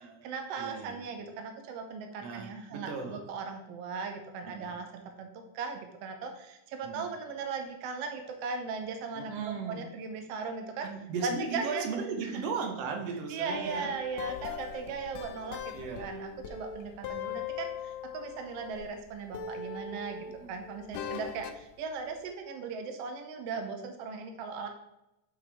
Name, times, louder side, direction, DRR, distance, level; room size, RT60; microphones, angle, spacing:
voice 1, 0.0-10.9 11.2-11.8 12.2-12.4 13.3-24.7, right 5 dB, 85° right, 5 dB, 1.4 m, -38 dB
voice 2, 0.6-1.0 2.2-3.2 4.5-4.8 6.8-7.1 9.1-9.8 10.8-13.9 15.7-16.1 20.2-20.6, right 5 dB, 65° right, 3 dB, 1.8 m, -37 dB
sound 1, 13.5-19.0 19.3-21.7, left 7 dB, 85° left, 1.5 m, -40 dB
8.5 x 5.5 x 3.5 m, 0.92 s
omnidirectional pair, 3.7 m